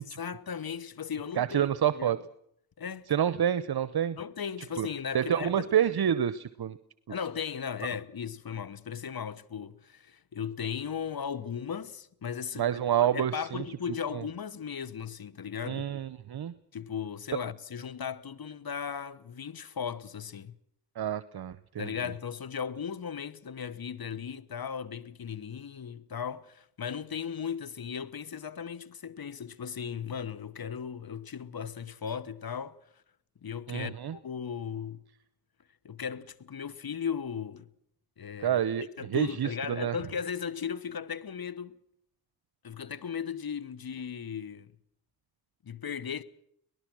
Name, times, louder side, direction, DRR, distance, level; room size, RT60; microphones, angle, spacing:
voice 1, 0.0-1.7 1.9-2.2 2.8-3.1 4.2-5.7 7.1-12.8 13.1-15.9 16.7-20.5 21.8-32.8 33.4-35.0 35.8-37.7 38.2-41.8 42.6-44.7 45.6-46.2, left 7 dB, 50° left, 1.3 m, -37 dB
voice 2, 1.4-2.2 3.1-4.2 4.8-4.9 5.1-6.8 12.6-13.6 14.1-14.2 15.7-16.5 21.0-21.9 33.7-34.2 38.4-40.0, right 9 dB, 55° right, 0.9 m, -28 dB
24.5 x 18.5 x 6.2 m
supercardioid pair, 45°, 45 cm